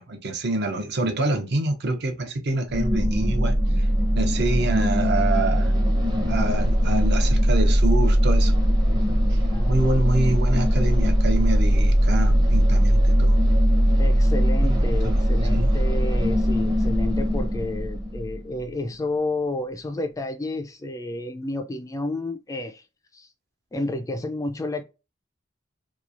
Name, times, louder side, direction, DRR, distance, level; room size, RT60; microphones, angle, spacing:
voice 1, 0.0-3.9 4.1-5.7 6.3-8.5 9.3-9.4 9.7-13.4 14.6-15.2 15.5-15.7, right 2 dB, 60° right, 0.6 m, -26 dB
sound 1, 2.7-18.6, equal, 20° right, 0.6 m, -20 dB
voice 2, 14.0-22.8 23.1-23.3 23.7-24.8, left 2 dB, 20° left, 0.3 m, -30 dB
2.9 x 2.3 x 2.4 m
head